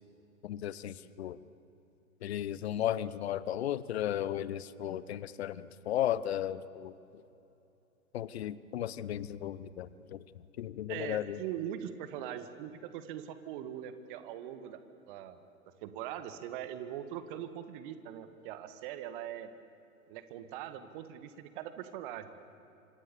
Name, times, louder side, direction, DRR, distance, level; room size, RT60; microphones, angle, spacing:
voice 1, 0.4-1.4 2.2-7.2 8.1-10.2 10.6-11.4, left 11 dB, 50° left, 17 dB, 1.0 m, -35 dB
voice 2, 10.9-14.8 15.1-15.4 15.8-19.5 20.1-22.3, right 10 dB, 35° right, 10 dB, 1.8 m, -41 dB
26.5 x 25.5 x 7.0 m, 3.0 s
figure-of-eight pair, 110°, 42 cm